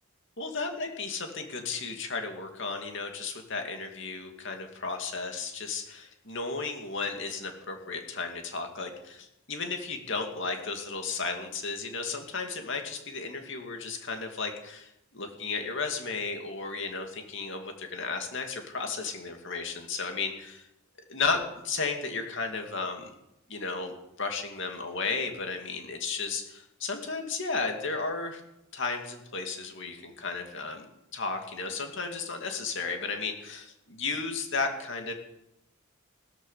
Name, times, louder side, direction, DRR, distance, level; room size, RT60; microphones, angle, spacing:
voice 1, 0.4-20.7 21.1-23.1 23.5-28.4 28.7-30.8 31.1-35.1, left 4 dB, 60° left, 4 dB, 2.7 m, -34 dB
16.5 x 14.0 x 5.9 m, 0.84 s
head